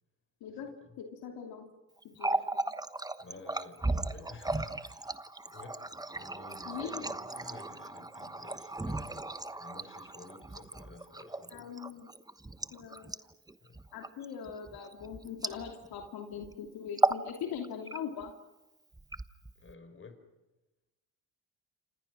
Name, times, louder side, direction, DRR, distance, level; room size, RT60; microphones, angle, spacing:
voice 1, 1.0-1.7 2.0-2.6 6.6-7.1 11.5-12.1 12.7-13.2 13.9-18.3, left 7 dB, 70° left, 2.9 m, -41 dB
Water tap faucet, 2.0-16.1 16.3-16.5 16.9-17.3 17.6-18.3 18.9-19.7, right 2 dB, 10° right, 1.1 m, -35 dB
voice 2, 3.2-5.1 5.5-9.3 9.6-11.7 13.6-13.8 19.6-20.3, left 3 dB, 30° left, 5.3 m, -52 dB
29.0 x 26.5 x 6.3 m
supercardioid pair, 75°, 38 cm